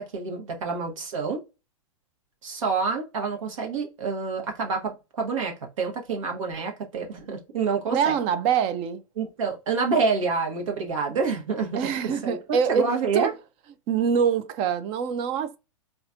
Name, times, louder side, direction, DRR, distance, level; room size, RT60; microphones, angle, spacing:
voice 1, 0.0-1.4 2.4-8.2 9.2-13.3, right 5 dB, 65° right, 1.1 m, -28 dB
voice 2, 7.9-9.0 11.7-13.3 13.9-15.6, right 7 dB, 30° right, 0.5 m, -25 dB
4.1 x 2.4 x 2.5 m
hypercardioid pair, 110°, 18 cm